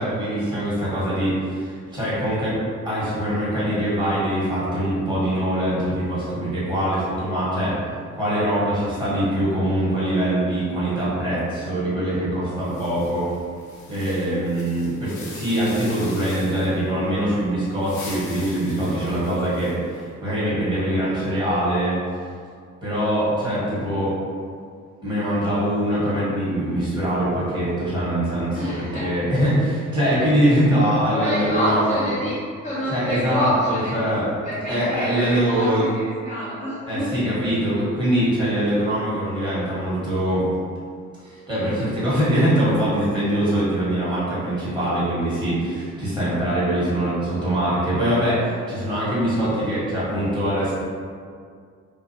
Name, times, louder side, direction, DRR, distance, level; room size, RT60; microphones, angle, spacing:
voice 1, 0.0-2.6 2.8-7.8 8.1-13.3 13.9-22.0 22.8-24.2 25.0-32.0 32.9-34.3 34.7-35.8 36.9-40.5 41.2-50.7, right 1 dB, 15° right, -10 dB, 1.3 m, -23 dB
sound 1, 12.6-16.8 17.6-20.0, left 3 dB, 75° left, 0.6 m, -42 dB
voice 2, 28.5-29.1 31.1-34.0 34.4-37.2, equal, 25° left, -9 dB, 0.5 m, -27 dB
2.4 x 2.4 x 2.7 m, 2.2 s
cardioid pair, 90°, 30 cm